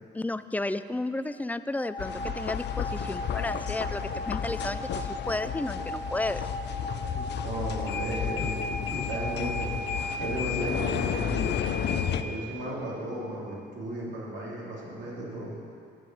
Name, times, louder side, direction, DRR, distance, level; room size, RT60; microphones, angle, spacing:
voice 1, 0.1-6.5, left 2 dB, 10° left, 13 dB, 0.3 m, -33 dB
sound 1, 1.8-10.1, equal, 80° left, 1.3 m, -38 dB
sound 2, 2.0-12.2, left 8 dB, 60° left, 0.6 m, -32 dB
voice 2, 7.3-9.7 10.2-15.5, right 1 dB, 65° right, -5 dB, 3.4 m, -35 dB
9.7 x 7.5 x 7.7 m, 2.4 s
cardioid pair, 90°, 20 cm